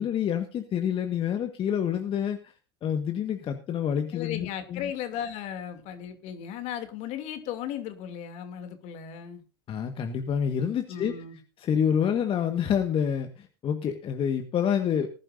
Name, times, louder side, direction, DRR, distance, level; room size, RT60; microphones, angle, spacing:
voice 1, 0.0-2.5 2.8-4.9 9.7-11.1 11.6-15.1, left 8 dB, 40° left, 7 dB, 1.6 m, -27 dB
voice 2, 4.1-9.4 10.9-11.4, left 9 dB, 55° left, 8 dB, 2.7 m, -36 dB
20.0 x 11.0 x 2.7 m, 0.34 s
hypercardioid pair, 85°, 14 cm